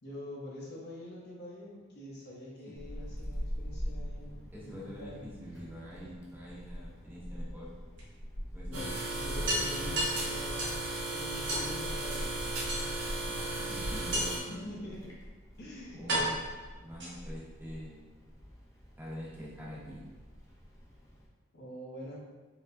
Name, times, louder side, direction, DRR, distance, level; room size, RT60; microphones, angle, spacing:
voice 1, 0.0-5.2 8.7-10.8 11.1-12.9 14.4-15.0 15.6-16.0 21.5-22.2, left 1 dB, 55° left, -5 dB, 0.9 m, -45 dB
Wind, 2.8-21.3, equal, 15° left, 0.5 m, -44 dB
voice 2, 4.5-7.7 8.5-8.9 9.4-10.0 13.5-14.5 15.9-16.4 16.8-18.1 19.0-20.1, equal, 10° right, -7 dB, 0.8 m, -45 dB
sound 1, 5.4-6.5 8.0-8.1 8.5-8.6 8.9-9.0 9.5-10.9 11.5-11.7 12.7-13.2 14.1-14.5 15.4-15.5 16.1-17.4, right 1 dB, 60° right, 1.0 m, -34 dB
sound 2, 8.7-14.4, right 2 dB, 85° right, 0.8 m, -35 dB
4.5 x 2.2 x 2.5 m, 1.3 s
head